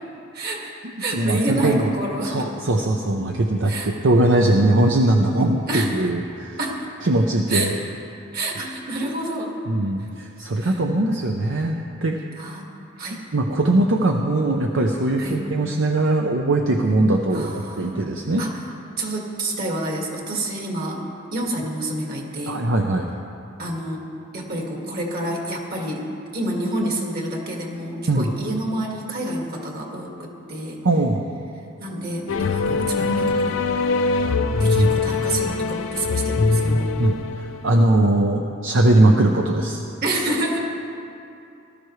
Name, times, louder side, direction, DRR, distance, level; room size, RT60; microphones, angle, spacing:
voice 1, 0.3-0.7 1.0-2.5 3.7-3.9 5.7-5.9 6.6-6.8 7.5-7.7 8.3-9.5 10.6-10.8 12.4-12.6 13.0-13.2 15.2-15.4 17.3-18.0 18.4-18.5 19.0-21.0 21.3-22.6 23.6-24.1 24.3-26.1 26.3-30.8 31.8-33.6 34.6-36.9 40.0-40.6, right 1 dB, 50° right, -1 dB, 2.1 m, -28 dB
voice 2, 1.1-1.9 2.2-6.6 7.0-7.8 9.7-11.7 12.0-12.2 13.3-18.4 22.5-23.1 28.1-28.3 30.8-31.2 34.7-34.9 37.0-39.8, right 2 dB, 70° right, 2 dB, 0.7 m, -20 dB
sound 1, 32.3-37.8, left 3 dB, 80° left, 0.6 m, -22 dB
18.5 x 13.0 x 3.2 m, 2.6 s
head